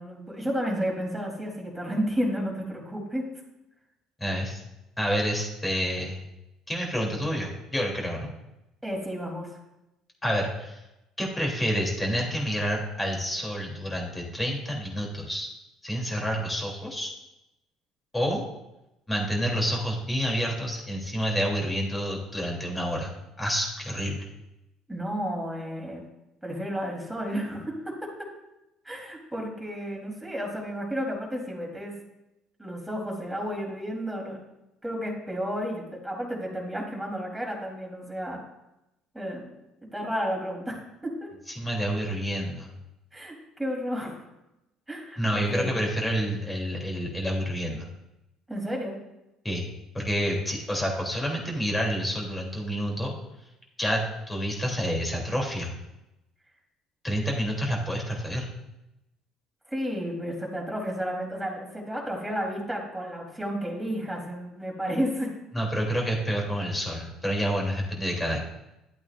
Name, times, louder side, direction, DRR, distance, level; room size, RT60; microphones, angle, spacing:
voice 1, 0.0-3.3 8.8-9.5 24.9-26.0 26.4-28.1 28.8-31.9 32.6-34.4 34.8-38.4 39.1-39.5 39.9-41.3 43.1-44.2 44.9-45.7 48.5-49.0 59.7-65.3, equal, 5° right, -2 dB, 3.7 m, -32 dB
voice 2, 4.2-4.6 5.0-6.2 6.7-8.3 10.2-10.8 11.2-15.5 15.8-17.1 18.1-18.4 19.1-24.2 41.6-42.7 45.2-47.9 49.4-49.7 49.9-53.1 53.8-55.7 57.0-58.5 65.5-68.4, equal, 15° left, 0 dB, 3.3 m, -28 dB
12.0 x 8.5 x 2.6 m, 0.92 s
hypercardioid pair, 60°, 0 cm